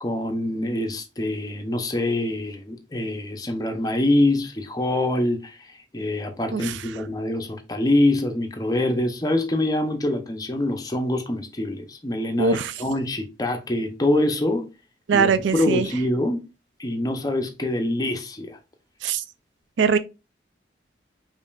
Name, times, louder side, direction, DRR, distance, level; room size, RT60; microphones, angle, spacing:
voice 1, 0.0-5.7 5.9-14.6 15.1-16.4 16.8-18.6, left 1 dB, 20° left, 0.5 m, -25 dB
voice 2, 12.4-12.7 15.1-15.9 19.0-19.2 19.8-20.0, right 5 dB, 85° right, 0.4 m, -21 dB
5.2 x 2.6 x 2.3 m
head